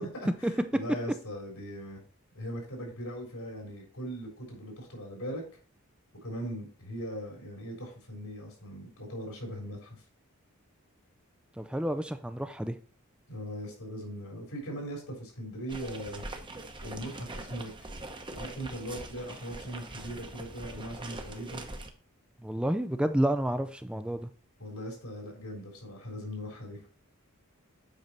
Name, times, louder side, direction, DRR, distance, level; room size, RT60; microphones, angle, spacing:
voice 1, 0.0-2.0 2.3-5.4 6.2-10.0 13.3-16.3 16.8-17.9 18.3-21.6 24.6-26.8, equal, 85° left, 3.8 m, -39 dB
voice 2, 11.6-12.8 22.4-24.3, right 1 dB, 5° right, 0.4 m, -30 dB
sound 1, 15.7-21.9, right 2 dB, 20° right, 0.9 m, -43 dB
8.1 x 5.4 x 4.4 m
head